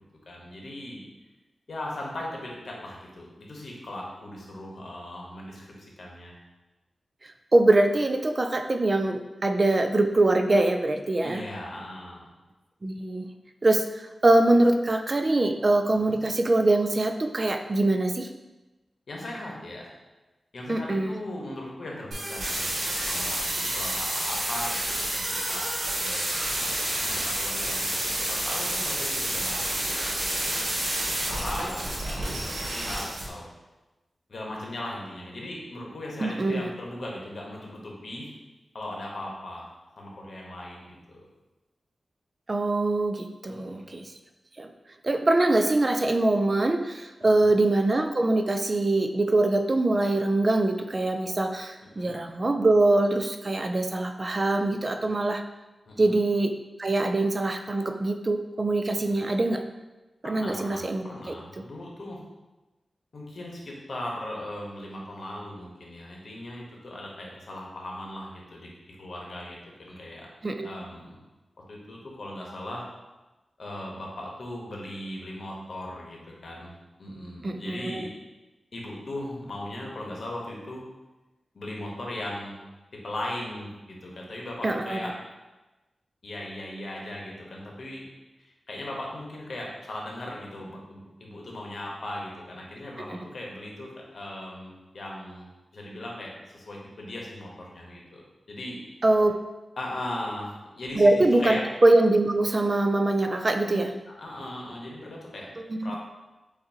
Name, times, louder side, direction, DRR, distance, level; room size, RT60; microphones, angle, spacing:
voice 1, 0.3-1.0 1.7-6.3 11.2-12.3 15.9-16.2 19.1-19.9 20.5-26.3 27.0-33.5 34.3-38.3 38.7-39.7 40.0-41.3 43.5-43.9 47.4-47.5 51.8-52.2 55.9-56.1 59.0-59.2 60.2-62.2 63.1-68.7 69.0-70.3 70.6-71.2 71.7-72.9 73.6-76.7 77.0-78.1 78.7-80.8 81.5-82.6 82.9-85.2 86.2-88.0 88.4-98.8 99.8-101.6 103.6-103.8 104.0-105.5 105.8-106.0, left 1 dB, 65° left, -2 dB, 1.0 m, -38 dB
voice 2, 7.5-11.4 12.8-13.3 13.6-13.8 14.2-18.3 20.7-21.1 36.2-36.6 42.5-44.1 44.6-44.7 45.0-55.4 56.0-56.5 56.8-59.6 60.2-61.0 70.4-70.7 77.4-78.0 84.6-85.0 99.0-99.4 101.0-103.9 105.6-106.0, right 2 dB, 35° right, 6 dB, 0.3 m, -23 dB
sound 1, 22.1-33.2, right 1 dB, 90° right, 1.3 m, -29 dB
6.9 x 2.6 x 2.7 m, 1.1 s
wide cardioid pair, 95°, 0 cm